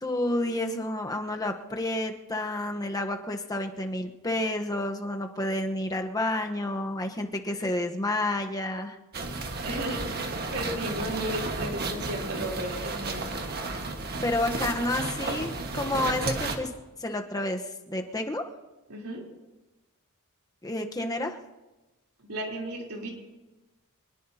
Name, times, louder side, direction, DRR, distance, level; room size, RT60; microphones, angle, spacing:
voice 1, 0.0-9.0 14.2-16.7 17.0-18.4 20.6-21.4, left 1 dB, 15° left, 4 dB, 1.1 m, -30 dB
sound 1, 9.1-16.6, right 3 dB, 45° right, 1.5 m, -33 dB
voice 2, 9.6-13.4 18.9-19.2 22.3-23.1, equal, 85° right, -1 dB, 3.7 m, -34 dB
24.5 x 20.5 x 2.9 m, 1.1 s
head